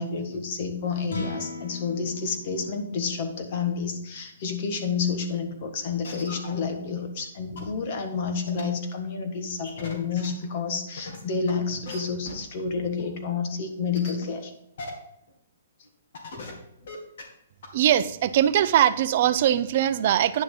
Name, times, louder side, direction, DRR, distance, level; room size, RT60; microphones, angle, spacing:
voice 1, 0.0-14.5 16.4-16.5, left 5 dB, 40° left, 6 dB, 1.5 m, -29 dB
sound 1, 1.0-7.4, left 3 dB, 85° left, 1.9 m, -41 dB
sound 2, 5.0-5.1 5.5-5.6 6.0-6.6 7.2-7.3 7.6-7.7 8.5-8.6 9.6-10.3 11.0-11.5 11.9-12.0 12.2-12.5 13.0-13.1 14.0-14.2 14.8-14.9 15.3-15.4 15.9-16.0 16.1-16.5 16.8-17.2 17.6-17.7, left 3 dB, 60° left, 2.4 m, -39 dB
voice 2, 17.7-20.4, right 11 dB, 40° right, 13 dB, 0.5 m, -21 dB
9.9 x 6.9 x 3.8 m, 0.80 s
hypercardioid pair, 165°, 0 cm